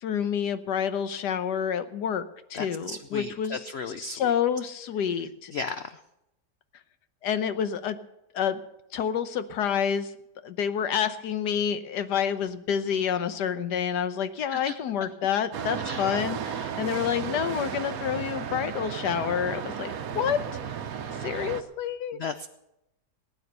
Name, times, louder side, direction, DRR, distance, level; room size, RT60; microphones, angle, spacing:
voice 1, 0.0-2.2 2.5-3.6 4.0-5.5 7.2-8.0 8.3-8.6 8.9-10.1 10.4-20.4 21.2-22.2, left 8 dB, 90° left, 11 dB, 1.5 m, -28 dB
voice 2, 2.5-4.3 5.5-6.0 14.5-14.7 15.8-16.1 22.2-22.5, left 4 dB, 60° left, 10 dB, 0.7 m, -35 dB
sound 1, 15.5-21.6, right 7 dB, 65° right, 1.2 m, -34 dB
19.0 x 9.1 x 6.7 m, 0.86 s
omnidirectional pair, 1.7 m